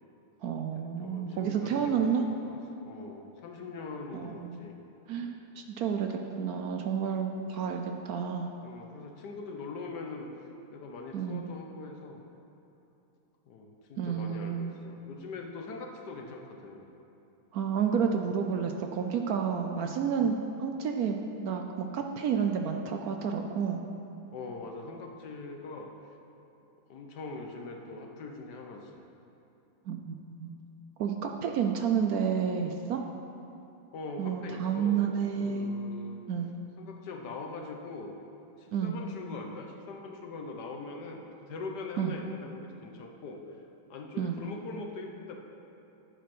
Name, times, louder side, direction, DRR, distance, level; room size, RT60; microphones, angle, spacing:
voice 1, 0.4-2.3 4.1-4.6 5.1-8.5 11.1-11.5 14.0-14.7 17.5-23.8 29.9-30.5 31.0-33.0 34.2-35.7 36.3-36.5 38.7-39.0 42.0-42.1 44.2-44.4, right 7 dB, 75° right, 4 dB, 0.8 m, -30 dB
voice 2, 1.0-2.6 2.8-4.8 7.4-7.6 8.6-10.3 10.7-12.2 13.5-16.9 24.3-25.9 26.9-29.0 33.9-36.2 36.8-38.2 38.6-43.4 43.9-45.4, left 3 dB, 60° left, 2 dB, 1.5 m, -42 dB
9.0 x 8.2 x 6.1 m, 2.9 s
omnidirectional pair, 2.1 m